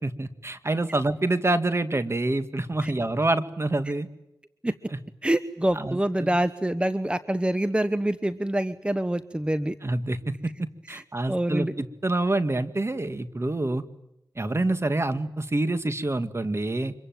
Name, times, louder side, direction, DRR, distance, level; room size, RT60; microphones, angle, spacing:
voice 1, 0.0-4.1 4.9-5.0 5.8-6.4 9.8-13.8 14.4-16.9, right 2 dB, 35° right, 11 dB, 2.2 m, -27 dB
voice 2, 5.2-9.8 10.9-11.0 11.3-11.7, right 1 dB, 15° right, 13 dB, 1.1 m, -26 dB
25.5 x 23.0 x 9.3 m, 0.83 s
cardioid pair, 40°, 7 cm